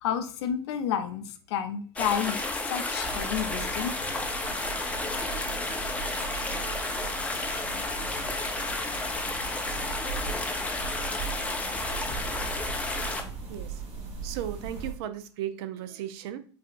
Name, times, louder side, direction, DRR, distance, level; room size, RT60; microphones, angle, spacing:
voice 1, 0.0-3.9, left 9 dB, 65° left, 9 dB, 0.5 m, -31 dB
sound 1, 2.0-13.2, left 2 dB, 10° left, 0.5 m, -32 dB
sound 2, 3.0-14.9, right 5 dB, 40° right, 1.4 m, -39 dB
voice 2, 13.5-13.8 14.2-16.4, right 11 dB, 60° right, 12 dB, 0.4 m, -35 dB
4.8 x 2.3 x 2.4 m, 0.43 s
hypercardioid pair, 85°, 15 cm